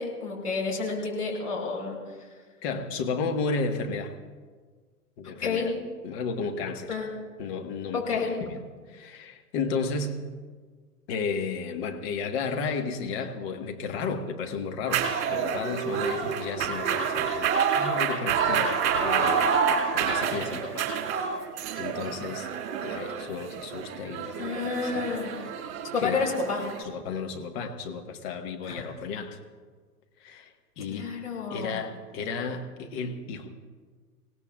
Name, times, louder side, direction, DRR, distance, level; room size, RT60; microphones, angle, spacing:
voice 1, 0.0-2.0 5.4-5.7 6.9-7.1 7.9-8.3 24.4-25.4 25.9-26.6 28.6-28.8 30.9-31.8, left 4 dB, 75° left, -2 dB, 5.4 m, -30 dB
voice 2, 2.6-4.1 5.2-5.7 6.0-7.0 7.4-8.6 8.9-10.2 11.1-15.0 15.3-20.9 21.8-22.5 22.8-25.1 26.0-26.2 26.8-29.4 30.2-31.1 31.5-33.5, left 4 dB, 40° left, 5 dB, 1.5 m, -33 dB
sound 1, 14.9-26.8, right 6 dB, 45° right, 2.3 m, -28 dB
26.5 x 18.0 x 2.4 m, 1.5 s
figure-of-eight pair, 110°, 47 cm